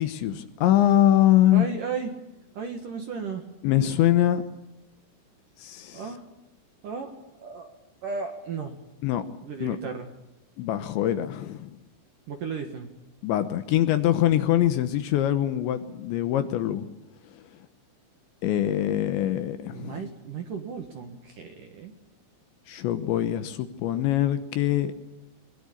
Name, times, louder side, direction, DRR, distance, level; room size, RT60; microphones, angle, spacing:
voice 1, 0.0-1.7 3.6-4.4 5.6-6.0 9.0-9.2 9.6-9.8 10.6-11.7 13.2-16.9 18.4-20.1 22.7-24.9, left 12 dB, 75° left, 10 dB, 3.0 m, -23 dB
voice 2, 1.5-2.1 2.5-3.4 5.9-6.2 6.8-7.1 7.4-7.8 8.0-8.7 9.4-10.1 12.3-12.9 19.7-21.9, right 5 dB, 60° right, 5 dB, 2.4 m, -34 dB
22.5 x 21.5 x 8.5 m, 0.93 s
omnidirectional pair, 5.9 m